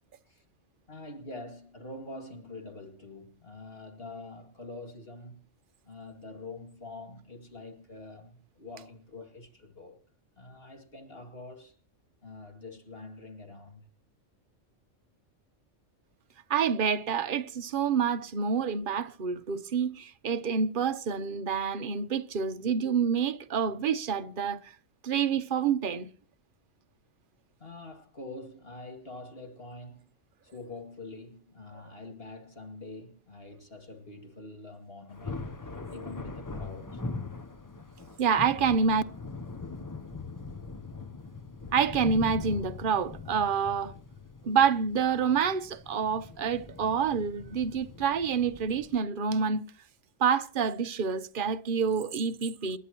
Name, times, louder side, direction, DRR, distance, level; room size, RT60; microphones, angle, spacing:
voice 1, 0.9-5.4 5.9-10.0 10.4-11.8 12.2-13.9 27.6-30.1 30.4-37.0 39.6-39.7 44.4-44.5, left 2 dB, 50° left, 2.6 m, -45 dB
voice 2, 16.5-24.7 25.0-26.1 38.2-39.0 41.7-43.9 44.4-49.6 50.2-52.8, right 6 dB, 45° right, 1.0 m, -27 dB
Thunder, 35.1-49.0, left 4 dB, 20° left, 0.6 m, -41 dB
29.0 x 10.0 x 3.0 m
omnidirectional pair, 1.3 m